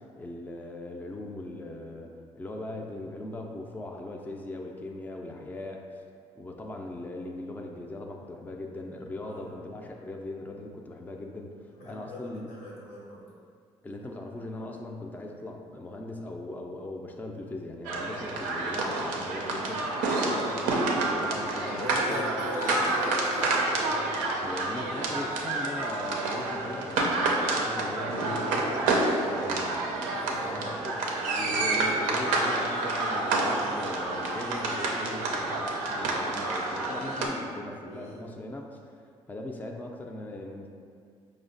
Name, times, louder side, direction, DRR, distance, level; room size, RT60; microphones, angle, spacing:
voice 1, 0.0-5.8 6.4-12.5 13.8-19.9 21.0-22.2 24.4-38.8 39.3-40.7, left 2 dB, 15° left, 1 dB, 0.3 m, -39 dB
voice 2, 11.7-13.2 20.1-20.7 21.7-24.1 30.1-31.0 37.8-38.4, left 1 dB, 85° left, -6 dB, 1.0 m, -40 dB
sound 1, 17.8-37.3, right 2 dB, 90° right, 0.4 m, -28 dB
4.8 x 2.0 x 2.5 m, 2.2 s
supercardioid pair, 60°, 13 cm